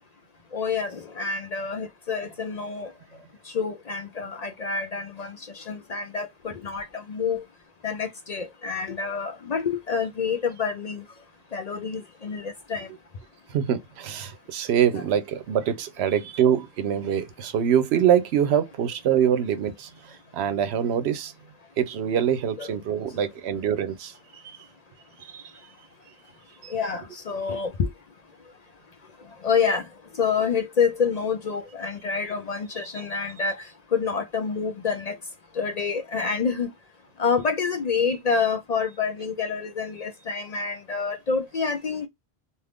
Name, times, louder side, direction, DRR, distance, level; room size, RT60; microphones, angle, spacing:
voice 1, 0.5-2.9 3.5-7.4 7.8-11.0 11.5-12.9 22.6-22.8 26.7-27.9 29.4-29.9 30.2-35.2 35.6-36.7 37.2-42.1, left 5 dB, 50° left, 0.5 m, -27 dB
voice 2, 13.5-21.3 21.8-24.1 24.4-24.6 25.2-25.4 26.6-26.7, right 9 dB, 90° right, 0.9 m, -24 dB
2.5 x 2.4 x 3.4 m
omnidirectional pair, 1.1 m